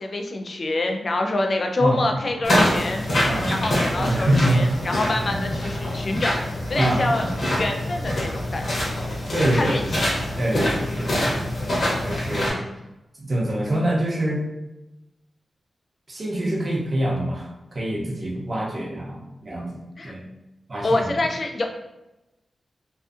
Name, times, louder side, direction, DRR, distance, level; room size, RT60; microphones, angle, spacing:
voice 1, 0.0-3.1 3.5-6.4 6.7-7.3 7.6-8.6 9.5-10.0 10.5-10.8 20.0-20.1 20.8-21.7, left 2 dB, 50° left, 3 dB, 0.3 m, -26 dB
voice 2, 1.8-2.7 3.3-3.7 4.0-5.4 6.7-7.6 9.3-9.9 10.4-12.6 13.2-14.4 16.1-20.2 20.7-21.1, right 1 dB, 40° right, -3 dB, 0.6 m, -26 dB
sound 1, 2.4-12.5, left 1 dB, 65° left, 0.8 m, -25 dB
2.5 x 2.4 x 2.4 m, 0.97 s
wide cardioid pair, 90°, 0 cm